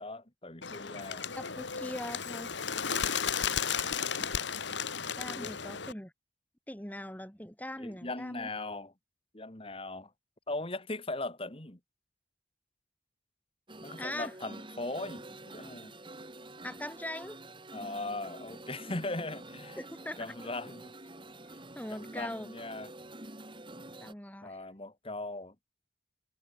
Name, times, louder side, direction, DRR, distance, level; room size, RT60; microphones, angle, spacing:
voice 1, 0.0-1.2 5.3-5.5 7.8-8.9 9.3-10.1 10.5-11.8 13.8-15.9 17.7-19.8 20.2-20.9 21.9-22.9 24.4-25.6, left 2 dB, 30° left, 1.9 m, -39 dB
Bird, 0.6-5.9, left 7 dB, 65° left, 1.6 m, -34 dB
voice 2, 1.4-2.6 5.2-6.1 6.7-8.5 14.0-14.3 16.6-17.4 19.8-20.2 21.4-22.5 24.0-24.6, left 1 dB, 10° left, 2.1 m, -41 dB
sound 1, 13.7-24.1, right 2 dB, 25° right, 3.5 m, -47 dB
head